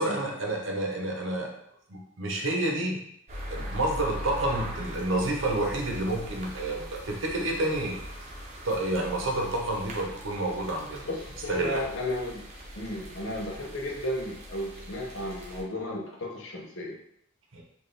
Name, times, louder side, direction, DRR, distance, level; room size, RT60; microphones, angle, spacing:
voice 1, 0.0-1.5 1.9-3.0 3.5-8.0 8.6-11.0 11.5-11.8 17.5-17.6, right 1 dB, 75° right, 1 dB, 0.8 m, -29 dB
sound 1, 3.3-15.6, equal, 35° right, 0.7 m, -41 dB
voice 2, 11.1-12.4 12.8-17.0, left 1 dB, 70° left, -1 dB, 0.7 m, -34 dB
4.1 x 2.4 x 3.3 m, 0.72 s
head